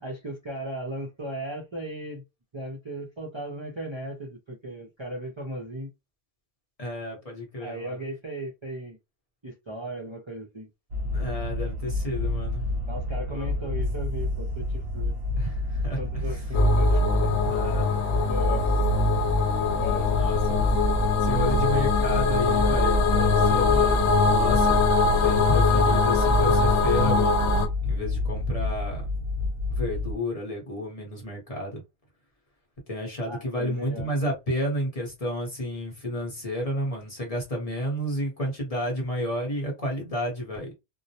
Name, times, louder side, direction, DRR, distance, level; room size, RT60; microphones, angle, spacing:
voice 1, 0.0-2.2 2.5-5.9 7.6-9.0 9.4-10.7 12.8-15.1 16.0-17.6 18.1-18.7 19.6-20.1 21.4-21.5 33.3-34.1, right 1 dB, 35° right, 0.5 m, -37 dB
voice 2, 6.8-8.0 11.1-12.7 13.3-13.7 15.4-16.5 17.4-18.2 20.0-20.8 21.2-27.5 27.8-29.0 29.7-31.8 32.9-40.7, equal, 40° left, 0.8 m, -32 dB
sound 1, 10.9-30.2, left 2 dB, 65° right, 0.8 m, -29 dB
sound 2, 16.5-27.7, left 3 dB, 80° left, 0.9 m, -22 dB
2.2 x 2.0 x 2.7 m
omnidirectional pair, 1.1 m